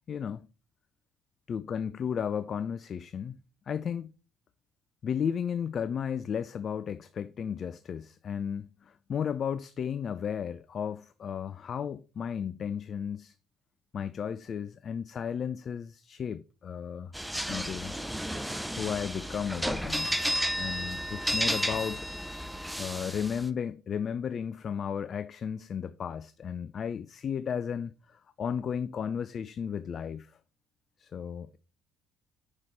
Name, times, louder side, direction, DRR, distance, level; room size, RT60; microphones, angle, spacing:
voice 1, 0.1-0.5 1.5-3.4 3.7-4.1 5.0-13.3 13.9-17.1 17.5-18.0 18.7-20.1 20.6-22.1 22.8-30.3 31.0-31.6, left 7 dB, 50° left, 0.3 m, -34 dB
sound 1, 17.1-23.5, equal, 5° right, 0.7 m, -32 dB
5.7 x 4.9 x 4.1 m
hypercardioid pair, 55°, 0 cm